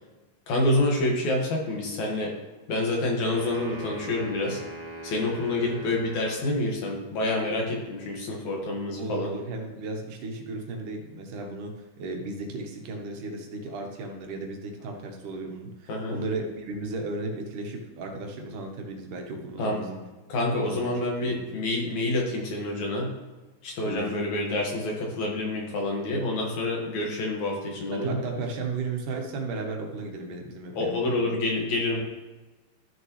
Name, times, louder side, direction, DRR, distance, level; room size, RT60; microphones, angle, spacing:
voice 1, 0.5-2.3 2.7-4.6 5.0-9.3 15.9-16.2 19.6-19.8 20.3-23.1 23.6-28.2 30.7-32.0, left 2 dB, 65° left, -1 dB, 2.9 m, -27 dB
sound 1, 3.2-6.6, right 1 dB, 45° right, 1.7 m, -40 dB
voice 2, 9.0-20.0 20.6-20.9 21.3-21.4 23.9-24.1 27.9-31.3, right 3 dB, 75° right, 2 dB, 2.7 m, -35 dB
13.5 x 6.6 x 3.1 m, 1.1 s
omnidirectional pair, 3.6 m